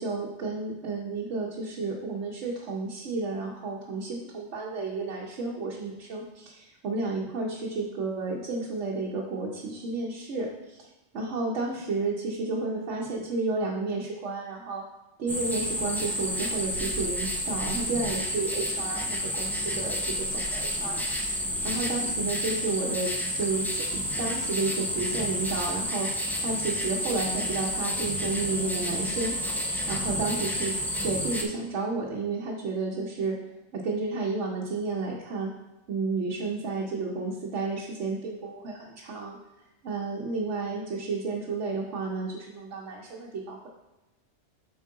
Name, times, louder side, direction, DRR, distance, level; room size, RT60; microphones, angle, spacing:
voice 1, 0.0-14.8 15.2-20.0 20.3-30.7 31.0-33.4 33.7-35.5 35.9-39.4 39.8-43.7, right 3 dB, 85° right, -2 dB, 1.1 m, -32 dB
sound 1, 15.3-31.4, equal, ahead, 0.4 m, -30 dB
7.2 x 4.5 x 3.8 m, 1.0 s
omnidirectional pair, 1.2 m